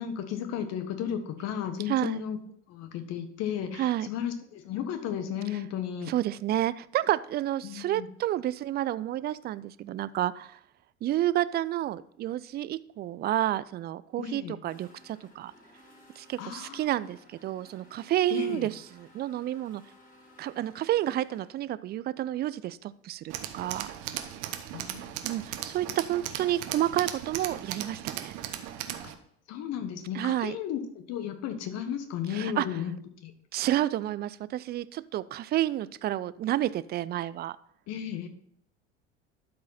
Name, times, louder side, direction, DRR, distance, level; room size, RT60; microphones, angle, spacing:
voice 1, 0.0-2.4 2.7-6.1 7.6-8.1 14.2-14.5 16.4-16.8 18.3-18.7 24.7-25.1 29.5-33.0 33.2-33.3 37.9-38.3, left 9 dB, 50° left, 8 dB, 1.3 m, -34 dB
voice 2, 1.9-2.2 3.8-4.1 6.1-10.6 11.0-15.5 16.2-19.8 20.4-23.9 25.2-28.3 30.1-30.6 32.3-32.7 33.5-37.6, right 13 dB, 30° right, 17 dB, 0.4 m, -30 dB
sound 1, 14.7-21.5, left 1 dB, 25° left, 2.7 m, -56 dB
Tools, 23.3-29.1, right 11 dB, 60° right, 1.0 m, -37 dB
12.0 x 4.8 x 4.1 m, 0.72 s
figure-of-eight pair, 65°, 33 cm